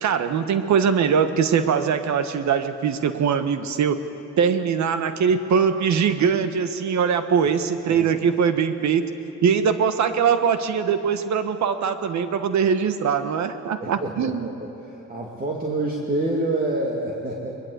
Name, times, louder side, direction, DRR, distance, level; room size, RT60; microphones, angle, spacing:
voice 1, 0.0-4.0 4.4-9.1 9.4-14.5, right 7 dB, 65° right, 10 dB, 1.4 m, -22 dB
voice 2, 13.8-17.5, right 2 dB, 30° right, -2 dB, 2.7 m, -27 dB
21.5 x 21.0 x 8.2 m, 2.8 s
cardioid pair, 90°, 30 cm